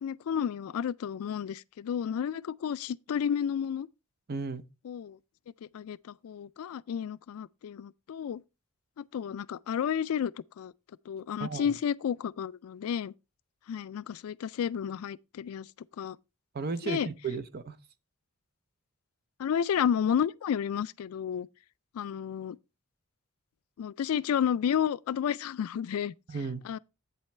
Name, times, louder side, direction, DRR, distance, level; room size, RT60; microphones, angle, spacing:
voice 1, 0.0-3.9 4.8-5.2 5.6-8.4 9.0-10.3 10.6-10.7 11.1-13.1 13.7-15.7 16.0-16.2 16.8-17.1 19.4-21.5 21.9-22.6 23.8-26.1 26.6-26.8, left 8 dB, 75° left, 0.3 m, -31 dB
voice 2, 4.3-4.6 11.4-11.7 16.5-17.8 26.3-26.6, right 4 dB, 45° right, 0.6 m, -34 dB
8.4 x 7.2 x 3.3 m
head